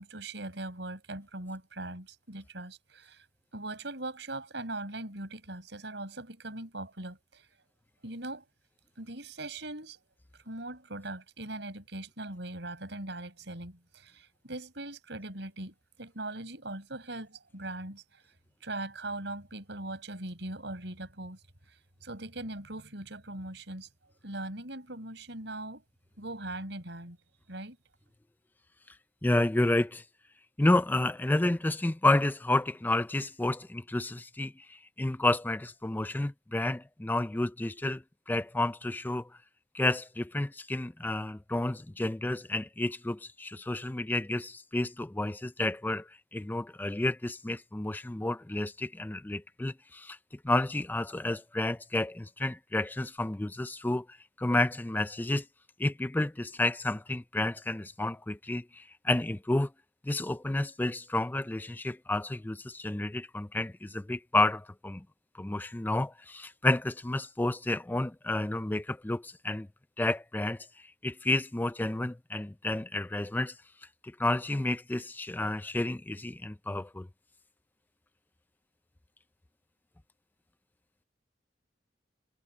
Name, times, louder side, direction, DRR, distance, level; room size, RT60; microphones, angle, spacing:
voice 1, 0.0-3.2 3.5-7.5 8.0-8.4 9.0-10.0 10.4-18.2 18.6-21.4 22.0-23.9 24.2-25.8 26.2-27.2 27.5-27.8, right 2 dB, 70° right, 6.5 m, -40 dB
voice 2, 29.2-30.0 30.6-39.3 39.7-50.2 50.4-55.4 55.8-59.7 60.0-65.0 65.4-69.7 70.0-70.7 71.0-73.6 74.2-77.1, left 2 dB, 10° left, 0.4 m, -30 dB
head